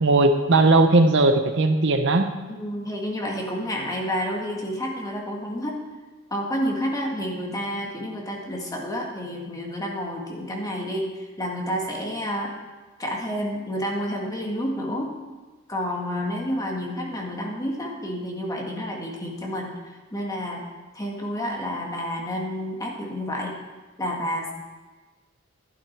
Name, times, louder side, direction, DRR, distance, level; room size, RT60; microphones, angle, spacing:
voice 1, 0.0-2.3, right 2 dB, 60° right, 7 dB, 0.8 m, -18 dB
voice 2, 2.5-5.8 6.3-11.1 11.4-12.5 13.0-15.1 15.7-19.7 20.1-20.6 20.9-23.5 24.0-24.5, equal, 15° left, -1 dB, 1.9 m, -29 dB
12.0 x 11.0 x 4.6 m, 1.2 s
head